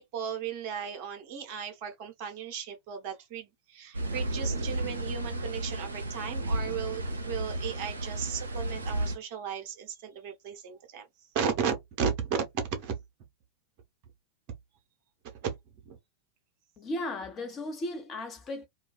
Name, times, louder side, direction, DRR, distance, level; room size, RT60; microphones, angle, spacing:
voice 1, 0.0-11.1 11.3-12.4 12.7-12.9 15.4-15.5 15.8-16.0, right 7 dB, 45° right, 0.8 m, -35 dB
sound 1, 3.9-9.2, right 1 dB, 75° right, 0.5 m, -33 dB
voice 2, 16.8-18.7, left 1 dB, 25° left, 0.9 m, -35 dB
2.3 x 2.2 x 2.4 m
figure-of-eight pair, 90°, 0 cm